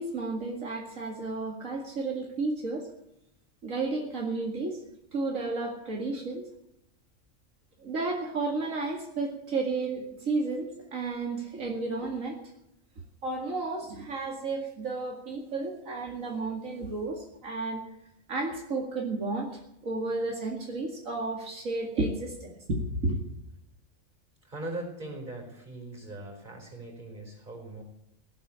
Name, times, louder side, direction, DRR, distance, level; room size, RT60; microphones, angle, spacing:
voice 1, 0.0-2.9 3.6-4.8 5.1-6.5 7.8-12.4 13.2-17.8 18.3-19.5 19.8-23.2, right 3 dB, 85° right, 0 dB, 2.5 m, -32 dB
voice 2, 24.4-27.8, right 2 dB, 35° right, 1 dB, 4.9 m, -40 dB
17.0 x 8.5 x 8.7 m, 0.80 s
omnidirectional pair, 1.3 m